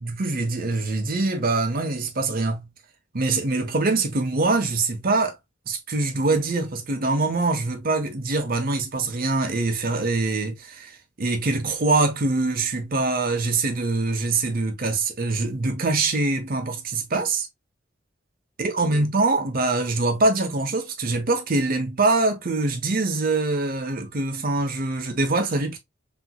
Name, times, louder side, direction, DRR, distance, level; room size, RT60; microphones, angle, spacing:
voice 1, 0.0-2.7 3.1-5.4 5.7-10.9 11.2-17.5 18.6-25.8, right 3 dB, 50° right, 0.8 m, -24 dB
3.3 x 2.9 x 2.3 m
head